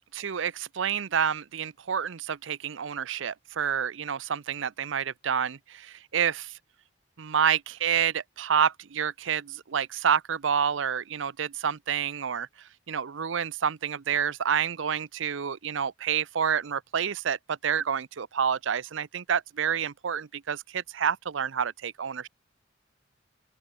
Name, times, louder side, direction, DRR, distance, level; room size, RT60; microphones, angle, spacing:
voice 1, 0.1-6.5 7.2-12.5 12.9-22.3, right 7 dB, 70° right, 0.6 m, -28 dB
open air
head